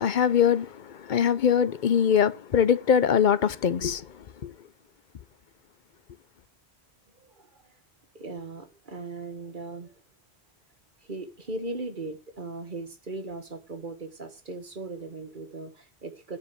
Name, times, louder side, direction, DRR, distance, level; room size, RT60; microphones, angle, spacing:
voice 1, 0.0-4.1 4.4-4.5, left 8 dB, 55° left, 0.7 m, -22 dB
voice 2, 7.2-7.8 8.1-10.0 11.0-16.4, right 3 dB, 50° right, 1.6 m, -38 dB
9.8 x 5.0 x 6.8 m
omnidirectional pair, 1.1 m